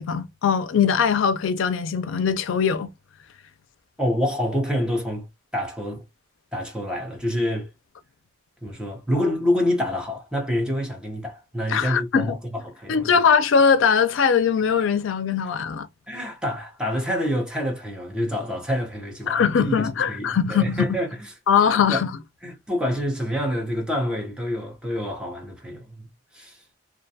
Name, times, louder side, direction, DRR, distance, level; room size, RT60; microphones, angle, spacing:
voice 1, 0.0-2.9 11.7-12.4 12.9-15.9 19.3-20.9 21.5-22.1, left 6 dB, 85° left, 0.4 m, -21 dB
voice 2, 4.0-5.3 5.5-6.0 6.5-7.7 8.6-13.2 16.1-21.4 21.9-22.0 22.4-26.1 26.3-26.8, equal, 5° right, 0.7 m, -27 dB
2.4 x 2.2 x 2.6 m
head